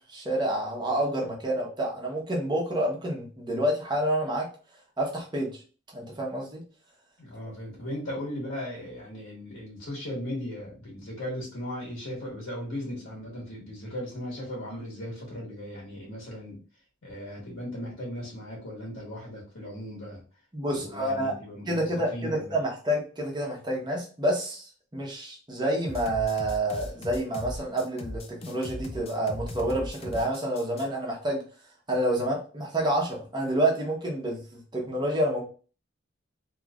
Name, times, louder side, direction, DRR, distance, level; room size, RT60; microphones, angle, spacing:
voice 1, 0.1-4.5 5.0-5.6 5.9-6.6 20.5-21.3 21.7-31.4 31.9-35.4, right 1 dB, 20° right, -2 dB, 0.9 m, -28 dB
voice 2, 7.2-16.6 17.0-20.2 20.7-22.5, equal, 85° left, -4 dB, 1.4 m, -37 dB
sound 1, 25.9-30.8, left 1 dB, 30° left, 0.4 m, -39 dB
3.1 x 2.9 x 2.4 m, 0.38 s
head